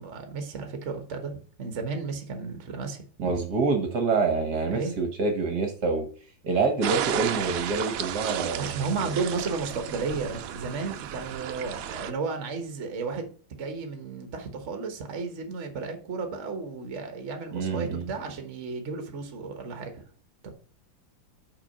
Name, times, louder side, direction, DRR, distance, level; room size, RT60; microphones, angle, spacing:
voice 1, 0.0-3.0 4.7-5.0 8.5-20.0 20.4-20.5, right 4 dB, 40° right, 5 dB, 1.3 m, -33 dB
voice 2, 3.2-6.1 6.4-8.9 17.5-18.1, right 4 dB, 60° right, 4 dB, 1.6 m, -26 dB
sound 1, 6.8-12.1, right 10 dB, 85° right, 0.7 m, -33 dB
6.1 x 4.7 x 5.3 m, 0.43 s
omnidirectional pair, 2.1 m